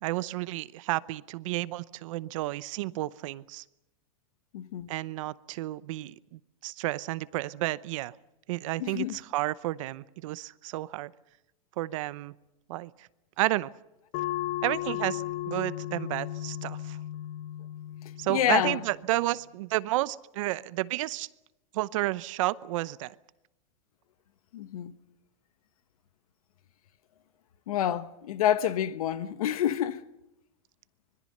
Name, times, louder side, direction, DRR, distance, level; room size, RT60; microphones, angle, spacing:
voice 1, 0.0-3.6 4.9-8.1 8.5-11.1 11.8-12.3 12.7-13.1 13.4-13.7 14.6-17.0 18.2-21.3 21.7-23.2, right 17 dB, 65° right, 0.8 m, -31 dB
voice 2, 4.5-4.9 8.8-9.2 18.3-18.8 24.5-24.9 27.7-30.0, left 10 dB, 80° left, 1.2 m, -28 dB
sound 1, 14.1-19.2, left 14 dB, 50° left, 1.0 m, -35 dB
25.0 x 21.5 x 6.6 m
supercardioid pair, 140°, 18 cm